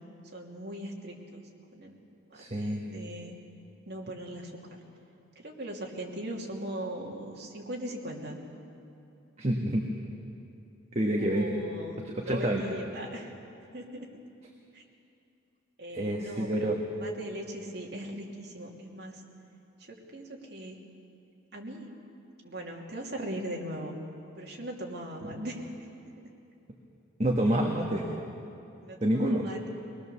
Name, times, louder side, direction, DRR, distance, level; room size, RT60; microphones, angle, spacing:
voice 1, 0.3-1.4 1.7-2.0 2.3-3.3 3.9-4.8 5.4-8.4 11.2-12.0 12.2-13.3 13.7-14.1 14.7-14.8 15.8-19.2 19.8-20.8 21.5-21.9 22.4-23.9 24.4-25.7 28.8-29.7, right 1 dB, 55° right, -1 dB, 2.7 m, -39 dB
voice 2, 2.3-2.8 9.4-9.9 10.9-11.5 12.0-12.6 15.9-16.7 27.2-28.1 29.0-29.4, right 1 dB, 30° right, 0 dB, 1.5 m, -27 dB
23.5 x 20.0 x 7.0 m, 2.7 s
head